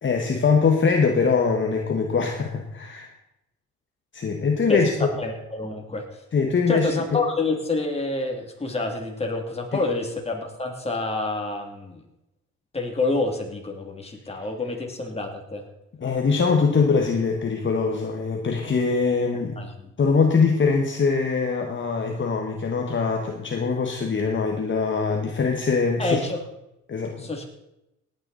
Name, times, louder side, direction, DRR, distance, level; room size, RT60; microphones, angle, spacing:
voice 1, 0.0-3.1 4.1-4.9 6.3-6.9 16.0-19.5 20.0-26.2 26.9-27.3, left 5 dB, 40° left, 2 dB, 1.6 m, -22 dB
voice 2, 4.7-6.0 6.7-12.0 12.7-15.6 19.6-19.9 26.0-26.4 27.2-27.4, left 3 dB, 20° left, 2 dB, 2.8 m, -28 dB
18.0 x 9.3 x 4.1 m, 0.87 s
cardioid pair, 90°, 30 cm